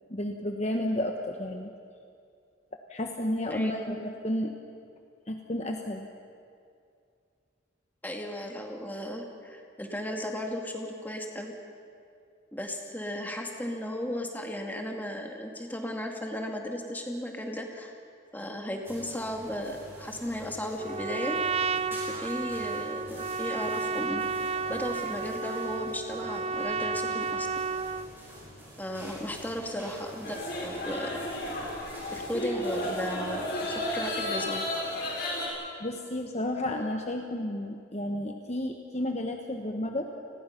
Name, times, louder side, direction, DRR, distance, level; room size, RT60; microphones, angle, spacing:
voice 1, 0.1-1.7 2.9-4.6 5.3-6.1 35.8-40.1, left 1 dB, 35° left, 3 dB, 1.1 m, -32 dB
voice 2, 3.5-4.1 8.0-11.5 12.5-17.9 18.3-21.4 21.9-24.4 24.7-27.5 28.8-31.1 32.1-34.7, equal, 10° left, 2 dB, 2.1 m, -35 dB
sound 1, 18.8-34.3, equal, 10° right, 5.6 m, -48 dB
Trumpet, 20.8-28.1, right 4 dB, 30° right, 0.5 m, -32 dB
sound 2, 30.2-35.5, left 1 dB, 55° left, 6.6 m, -33 dB
29.5 x 20.5 x 5.9 m, 2.4 s
head